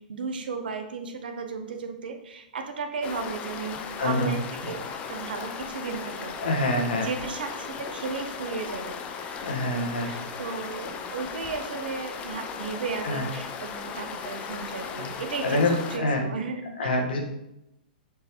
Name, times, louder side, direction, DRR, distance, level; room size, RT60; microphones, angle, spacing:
voice 1, 0.1-4.8 5.1-6.7 7.0-15.6 15.9-16.9, right 5 dB, 70° right, 5 dB, 0.6 m, -35 dB
sound 1, 3.0-16.0, left 6 dB, 25° left, 0.4 m, -37 dB
voice 2, 4.0-4.3 4.6-4.7 6.4-7.1 9.4-10.1 13.0-13.2 15.0-15.1 15.4-16.2 16.8-17.2, left 2 dB, 70° left, 1 dB, 1.0 m, -26 dB
4.4 x 2.8 x 3.4 m, 0.85 s
hypercardioid pair, 125°, 5 cm